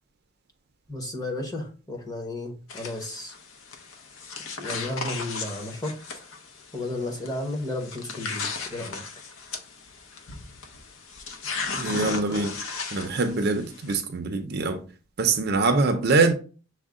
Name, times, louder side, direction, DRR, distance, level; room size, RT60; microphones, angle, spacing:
voice 1, 0.9-3.3 4.6-5.9 6.7-9.0, left 2 dB, 15° left, 0.8 m, -33 dB
sound 1, 2.7-14.0, left 4 dB, 65° left, 0.7 m, -36 dB
voice 2, 11.8-12.6 12.9-14.9 15.2-16.3, right 3 dB, 45° right, 0.4 m, -24 dB
6.1 x 2.1 x 3.6 m
head